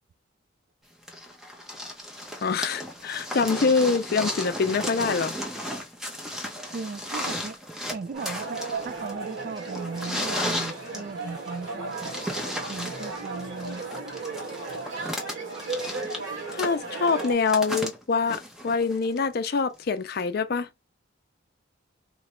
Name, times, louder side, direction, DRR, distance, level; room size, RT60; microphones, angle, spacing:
sound 1, 1.1-19.2 20.2-20.3, equal, ahead, 0.6 m, -35 dB
voice 1, 2.4-5.3 10.4-10.7 11.0-11.1 16.5-20.7, left 4 dB, 50° left, 0.5 m, -25 dB
voice 2, 6.7-7.6 7.9-12.1 12.7-13.9, right 4 dB, 45° right, 0.3 m, -37 dB
sound 2, 8.1-17.3, right 3 dB, 65° right, 1.7 m, -35 dB
3.0 x 2.3 x 4.2 m
head